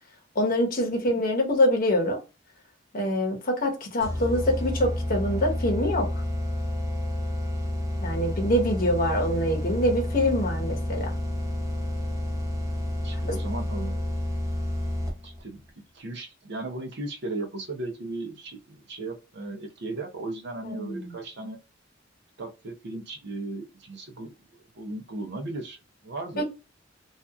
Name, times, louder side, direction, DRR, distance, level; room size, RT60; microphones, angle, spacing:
voice 1, 0.4-2.2 2.9-6.1 8.0-11.1 13.3-13.4 20.6-21.1 26.4-26.5, left 1 dB, 45° left, 0.8 m, -25 dB
sound 1, 4.0-15.4, left 1 dB, 15° right, 0.6 m, -30 dB
voice 2, 13.0-14.0 15.2-15.6 15.9-21.6 22.4-24.3 24.8-25.8 26.0-26.4, right 2 dB, 60° right, 0.6 m, -36 dB
2.7 x 2.3 x 2.3 m
head